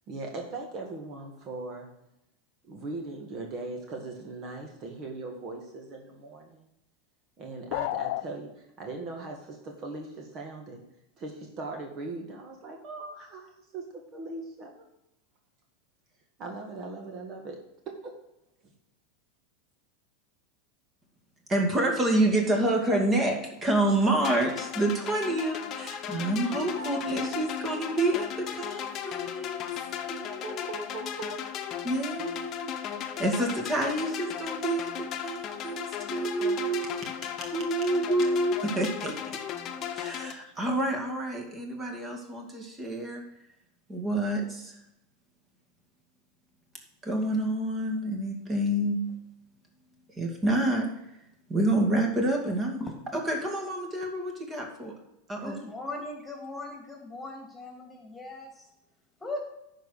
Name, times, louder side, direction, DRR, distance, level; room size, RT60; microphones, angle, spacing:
voice 1, 0.1-1.9 2.6-6.7 7.4-10.8 11.2-14.9 16.4-17.6 18.0-18.1 26.6-28.0 30.4-31.4 36.1-36.4 36.8-36.9, right 3 dB, 40° right, 2 dB, 1.9 m, -40 dB
sound 1, 7.7-8.3, left 18 dB, 65° left, 0.3 m, -30 dB
voice 2, 21.5-29.6 30.0-30.7 31.8-32.7 33.0-36.9 37.5-39.1 39.9-43.2 43.9-44.8 47.0-49.0 50.2-50.9 51.5-52.8 53.1-54.9 55.3-55.6, right 1 dB, 25° right, 2 dB, 2.3 m, -28 dB
sound 2, 24.2-40.3, left 9 dB, 40° left, 1.0 m, -36 dB
voice 3, 55.4-58.7 59.2-59.4, left 2 dB, 10° left, 1 dB, 2.6 m, -39 dB
10.5 x 4.6 x 6.6 m, 0.84 s
hypercardioid pair, 105°, 0 cm